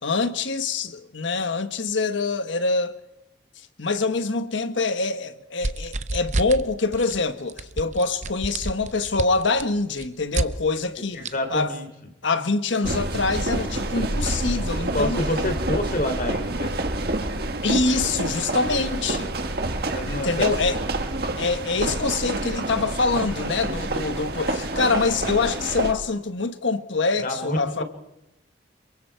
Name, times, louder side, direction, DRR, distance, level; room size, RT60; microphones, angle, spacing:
voice 1, 0.0-3.0 3.8-11.2 11.5-11.7 12.2-15.2 17.6-19.3 20.1-20.8 21.3-27.8, left 3 dB, 85° left, 1.3 m, -25 dB
sound 1, 5.6-6.6 6.9-7.2 7.5-10.5 11.2-11.3, right 2 dB, 40° right, 0.7 m, -28 dB
voice 2, 11.1-11.9 14.9-16.7 19.9-20.5 27.2-27.8, left 1 dB, 45° left, 3.1 m, -27 dB
sound 2, 12.8-25.9, right 2 dB, 55° right, 1.7 m, -28 dB
27.0 x 22.5 x 4.7 m
head